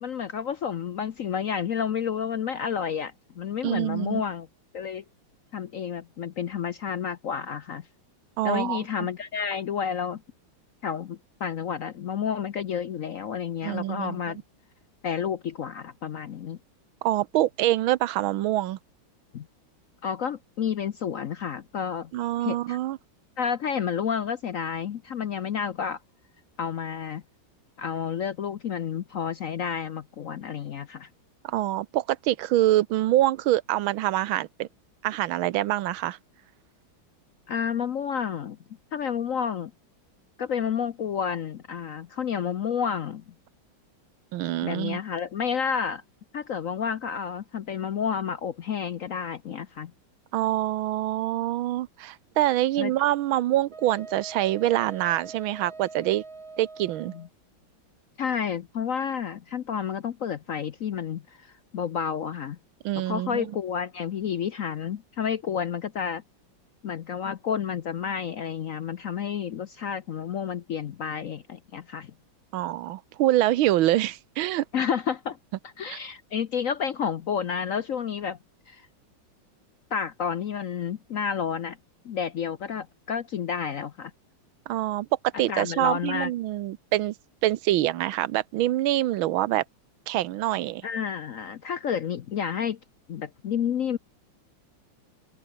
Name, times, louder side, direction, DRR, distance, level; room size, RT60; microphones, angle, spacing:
voice 1, 0.0-4.5 4.7-5.0 5.5-7.9 8.4-10.2 10.8-14.4 15.0-16.6 19.3-19.5 20.0-22.1 22.4-22.8 23.4-26.0 26.6-27.2 27.8-31.1 37.5-38.6 38.9-39.7 40.4-43.2 44.6-46.0 46.3-49.9 52.8-52.9 57.1-57.3 58.2-62.6 63.0-66.2 66.8-72.1 74.7-75.4 75.8-78.4 78.7-78.9 79.9-81.8 82.0-84.1 85.5-86.3 90.8-92.8 93.1-94.0, left 7 dB, 60° left, 0.9 m, -30 dB
voice 2, 3.6-4.2 8.4-8.8 13.6-14.2 17.0-18.8 22.1-23.0 31.4-34.7 35.0-36.2 44.3-45.0 50.3-56.2 56.6-57.1 62.8-63.5 72.5-74.6 75.9-76.0 84.7-85.1 85.4-87.1 87.4-89.6 90.1-90.8, right 14 dB, 85° right, 1.6 m, -25 dB
Wind instrument woodwind instrument, 53.7-57.3, right 3 dB, 50° right, 4.1 m, -43 dB
open air
omnidirectional pair, 2.2 m